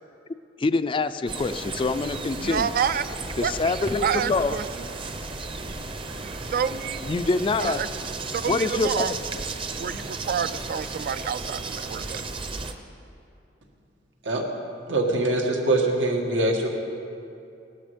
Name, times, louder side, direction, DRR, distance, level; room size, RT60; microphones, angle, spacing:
voice 1, 0.6-2.7 3.4-4.6 7.0-7.8 8.5-9.2, left 3 dB, 30° left, 12 dB, 0.4 m, -25 dB
sound 1, 1.3-12.7, right 3 dB, 30° right, 0.8 m, -34 dB
voice 2, 2.4-3.0 3.4-3.5 4.0-4.6 6.2-7.0 7.6-7.9 8.3-9.1 9.8-12.2, right 7 dB, 50° right, 13 dB, 0.3 m, -28 dB
voice 3, 14.9-16.7, right 2 dB, 90° right, 1 dB, 2.0 m, -23 dB
17.0 x 12.5 x 5.1 m, 2.6 s
head